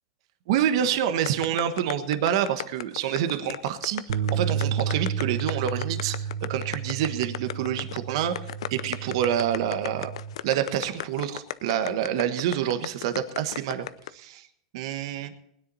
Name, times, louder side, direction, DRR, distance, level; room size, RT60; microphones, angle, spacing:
voice 1, 0.5-10.1 10.4-13.9 14.1-14.5 14.7-15.3, right 10 dB, 65° right, 9 dB, 1.3 m, -27 dB
sound 1, 1.3-14.1, left 12 dB, 80° left, 0.6 m, -34 dB
sound 2, 4.1-10.3, right 7 dB, 80° right, 0.9 m, -31 dB
20.0 x 9.9 x 4.1 m, 0.71 s
supercardioid pair, 135°, 3 cm